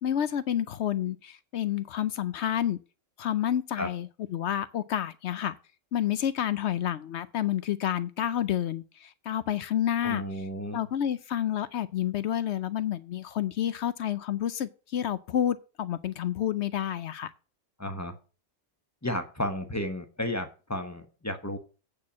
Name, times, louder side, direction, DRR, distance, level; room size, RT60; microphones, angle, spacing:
voice 1, 0.0-2.8 3.2-5.5 5.9-10.2 10.7-17.3, left 10 dB, 65° left, 0.8 m, -29 dB
voice 2, 10.0-10.9 17.8-18.1 19.0-21.6, left 1 dB, 15° left, 1.0 m, -33 dB
8.7 x 4.3 x 7.2 m
omnidirectional pair, 1.4 m